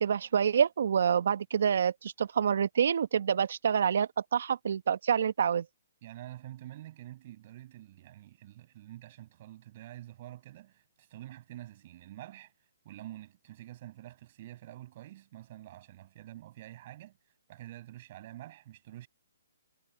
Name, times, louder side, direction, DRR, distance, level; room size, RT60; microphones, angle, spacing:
voice 1, 0.0-5.6, right 7 dB, 60° right, 1.4 m, -27 dB
voice 2, 6.0-12.5 12.8-17.2 17.5-19.1, right 14 dB, 40° right, 7.0 m, -47 dB
hypercardioid pair, 140°, 0 cm